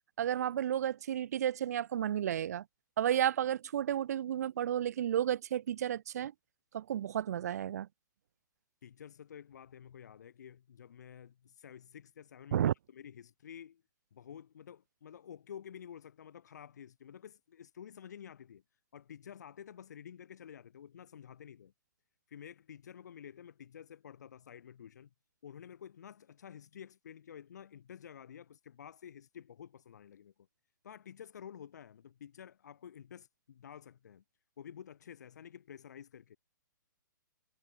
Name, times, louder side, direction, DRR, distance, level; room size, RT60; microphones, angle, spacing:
voice 1, 0.2-2.6 3.0-6.3 6.7-7.9 12.5-12.7, right 10 dB, 50° right, 0.9 m, -32 dB
voice 2, 8.8-13.8 14.1-18.6 18.9-21.7 22.3-25.1 25.4-30.3 30.8-34.2 34.6-36.4, left 8 dB, 55° left, 2.0 m, -51 dB
figure-of-eight pair, 120°, 11 cm